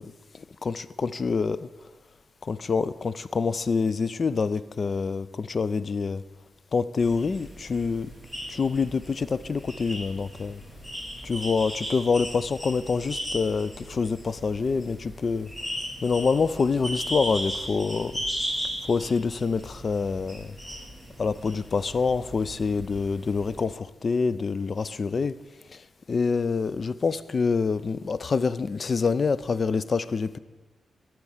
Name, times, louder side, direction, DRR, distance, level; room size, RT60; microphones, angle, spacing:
voice 1, 0.0-1.7 2.4-6.2 6.7-8.1 8.5-10.6 11.2-15.5 16.0-18.2 18.8-20.6 21.2-25.3 25.7-25.8 26.1-30.4, left 4 dB, 40° left, 16 dB, 0.3 m, -26 dB
sound 1, 7.0-23.7, equal, 15° left, 1.2 m, -37 dB
13.0 x 4.5 x 5.5 m, 1.2 s
wide cardioid pair, 140°, 0 cm